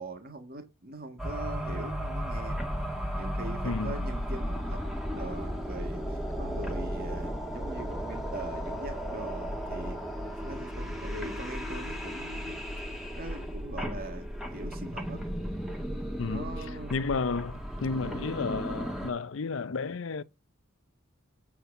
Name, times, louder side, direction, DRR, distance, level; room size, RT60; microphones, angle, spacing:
voice 1, 0.0-2.6 3.2-4.8 5.1-10.0 10.4-12.6 13.2-14.3 14.5-15.3 16.3-17.1, right 2 dB, 45° right, 1.8 m, -42 dB
sound 1, 1.2-19.1, equal, ahead, 1.8 m, -35 dB
voice 2, 3.6-4.0 16.2-20.2, left 4 dB, 65° left, 0.5 m, -32 dB
8.6 x 4.4 x 6.6 m
head